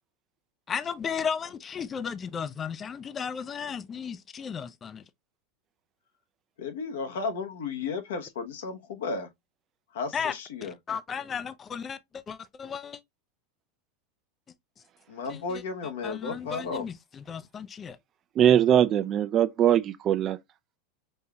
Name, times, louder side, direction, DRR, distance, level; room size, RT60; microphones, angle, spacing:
voice 1, 0.7-5.0 10.1-10.3 10.6-13.0 15.3-15.4 16.0-18.0, left 7 dB, 25° left, 0.4 m, -34 dB
voice 2, 6.6-9.3 9.9-10.7 15.1-16.9, left 4 dB, 80° left, 0.9 m, -34 dB
voice 3, 18.4-20.4, right 10 dB, 40° right, 0.4 m, -21 dB
5.4 x 2.8 x 2.3 m
hypercardioid pair, 110°, 0 cm